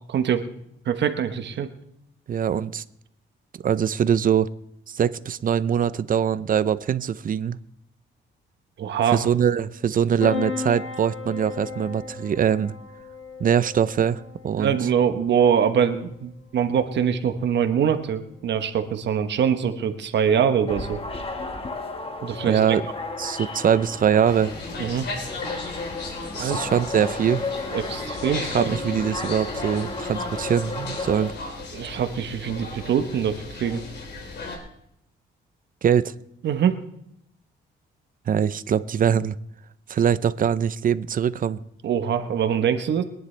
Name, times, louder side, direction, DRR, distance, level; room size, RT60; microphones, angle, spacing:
voice 1, 0.1-0.5 0.9-1.7 8.8-9.2 14.6-21.0 22.2-22.6 24.8-25.1 26.4-26.8 27.7-28.7 31.7-33.8 36.4-36.8 41.8-43.0, right 8 dB, 65° right, 8 dB, 1.1 m, -23 dB
voice 2, 2.3-2.8 3.6-4.5 4.9-7.6 9.1-12.7 13.4-14.8 22.5-22.8 23.2-24.5 26.4-27.4 28.4-31.3 35.8-36.1 38.3-39.4 39.9-41.6, right 8 dB, 45° right, 16 dB, 0.6 m, -22 dB
Piano, 10.2-25.2, left 5 dB, 85° left, 5.0 m, -39 dB
sound 1, 20.7-31.3, left 3 dB, 30° left, 1.4 m, -33 dB
sound 2, 24.2-34.6, left 3 dB, 60° left, 3.9 m, -36 dB
23.0 x 10.5 x 3.3 m, 0.78 s
cardioid pair, 90°, 20 cm